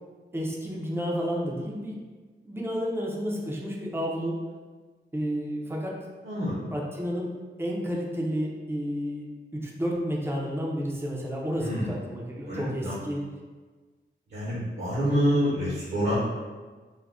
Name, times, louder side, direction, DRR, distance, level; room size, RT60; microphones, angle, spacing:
voice 1, 0.3-2.0 2.5-4.4 5.1-6.0 6.7-7.3 7.6-13.2 15.1-15.4, equal, 10° right, -3 dB, 0.4 m, -31 dB
voice 2, 6.2-6.7 11.6-11.9 12.5-12.9 14.3-16.1, equal, 60° right, -8 dB, 0.7 m, -27 dB
2.3 x 2.1 x 3.5 m, 1.4 s
wide cardioid pair, 165°, 20 cm